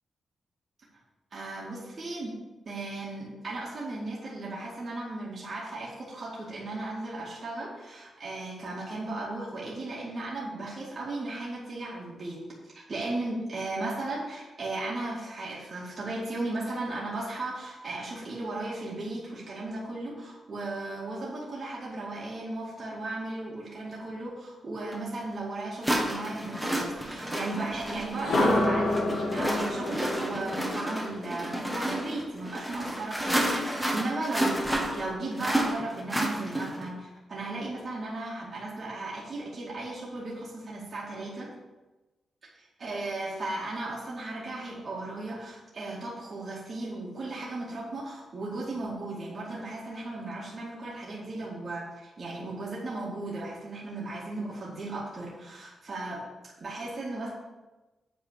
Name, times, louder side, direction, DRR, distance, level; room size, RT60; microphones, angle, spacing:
voice 1, 1.3-2.4 2.7-12.4 12.7-34.6 34.9-41.5 42.8-56.3 56.6-57.3, right 2 dB, 45° right, -6 dB, 2.2 m, -36 dB
sound 1, 24.9-25.0 25.8-36.9, right 1 dB, 5° right, 1.4 m, -31 dB
sound 2, 28.1-32.1, left 2 dB, 85° left, 2.0 m, -29 dB
8.4 x 4.2 x 6.4 m, 1.1 s
cardioid pair, 110°, 0 cm